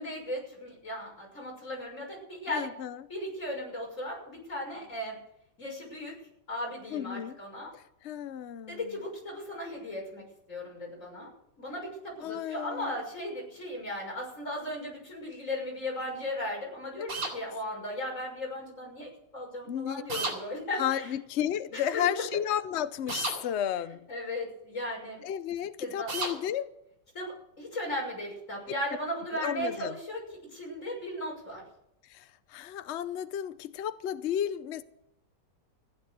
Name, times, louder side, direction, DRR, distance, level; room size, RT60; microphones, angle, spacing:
voice 1, 0.0-2.7 3.1-5.2 5.6-6.1 6.5-7.7 8.7-11.3 11.6-21.1 21.7-22.0 24.1-25.2 25.8-26.1 27.1-30.2 30.5-31.6, left 1 dB, 40° left, 6.5 m, -36 dB
voice 2, 2.5-3.0 6.9-7.4 7.7-8.8 12.2-13.0 19.7-20.0 20.8-24.1 25.2-26.7 29.3-30.0 32.0-34.8, left 10 dB, 70° left, 0.6 m, -33 dB
sound 1, 17.1-17.4 20.1-20.4 23.1-23.4 26.1-26.4, right 3 dB, 80° right, 4.1 m, -32 dB
15.0 x 11.0 x 6.7 m
omnidirectional pair, 2.0 m